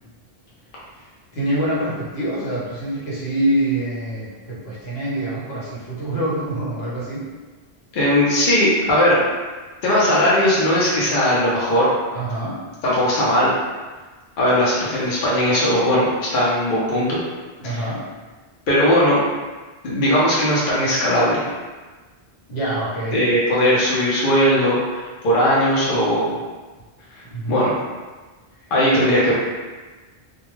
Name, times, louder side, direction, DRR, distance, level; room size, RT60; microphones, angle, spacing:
voice 1, 1.3-7.3 12.1-12.6 17.6-18.0 22.5-23.3 27.3-27.6 28.6-28.7 29.0-29.1, right 1 dB, 75° left, -7 dB, 1.1 m, -25 dB
voice 2, 7.9-9.2 9.8-11.9 12.8-13.5 14.4-17.2 17.6-17.8 18.7-19.2 19.8-21.4 23.1-26.3 27.5-27.7 28.7-29.3, equal, 60° left, -7 dB, 0.8 m, -18 dB
2.2 x 2.2 x 3.0 m, 1.3 s
omnidirectional pair, 1.1 m